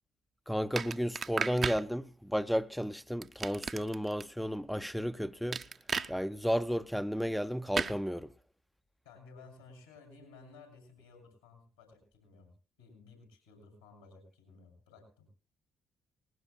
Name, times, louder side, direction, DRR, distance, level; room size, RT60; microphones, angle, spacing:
voice 1, 0.5-5.6 6.1-8.3, equal, ahead, 0.5 m, -33 dB
sound 1, 0.8-1.8 3.2-4.2 5.5-6.1 7.7-8.0, right 5 dB, 40° right, 0.7 m, -34 dB
voice 2, 9.0-15.3, left 3 dB, 85° left, 7.2 m, -56 dB
20.0 x 18.5 x 2.3 m
figure-of-eight pair, 45°, 0 cm